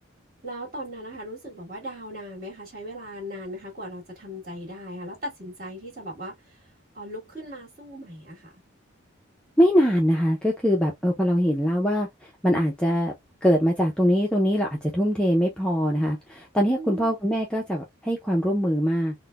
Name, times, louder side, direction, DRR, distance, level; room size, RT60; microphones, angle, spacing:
voice 1, 0.4-6.3 6.9-8.5 16.5-17.1, equal, 45° right, 1.7 m, -38 dB
voice 2, 9.6-12.1 12.4-13.1 13.4-19.1, equal, 5° left, 0.4 m, -22 dB
3.9 x 2.1 x 2.2 m
head